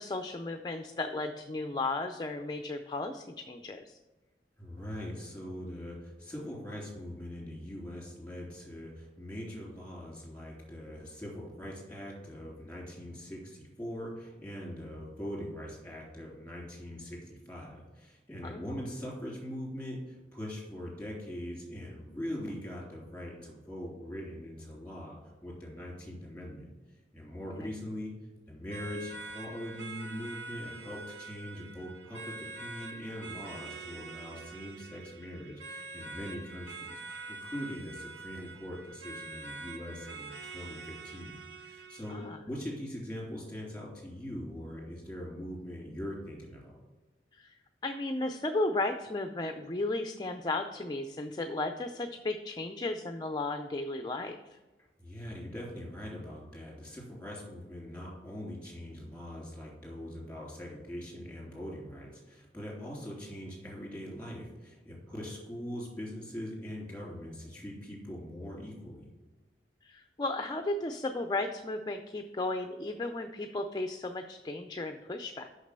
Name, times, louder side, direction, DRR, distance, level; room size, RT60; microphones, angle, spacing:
voice 1, 0.0-4.0 18.4-18.8 27.6-27.7 42.1-42.4 47.3-47.6 47.8-54.6 69.8-75.5, left 2 dB, 25° left, 6 dB, 0.4 m, -35 dB
voice 2, 4.6-26.7 27.1-28.1 28.5-41.3 41.6-46.8 55.0-69.1, equal, 10° left, -2 dB, 2.8 m, -42 dB
sound 1, 28.7-42.3, right 3 dB, 75° right, 0.9 m, -45 dB
6.4 x 5.9 x 6.7 m, 1.1 s
head